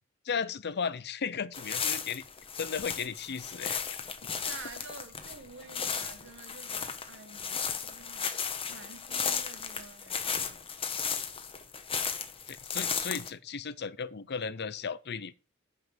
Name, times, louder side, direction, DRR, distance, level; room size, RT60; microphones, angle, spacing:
voice 1, 0.2-2.2 2.6-3.8 12.5-15.3, left 6 dB, 50° left, 0.6 m, -35 dB
sound 1, 1.5-13.3, left 6 dB, 25° left, 1.2 m, -35 dB
voice 2, 4.3-8.3 8.7-10.7, right 4 dB, 60° right, 1.7 m, -49 dB
9.3 x 5.7 x 7.4 m
head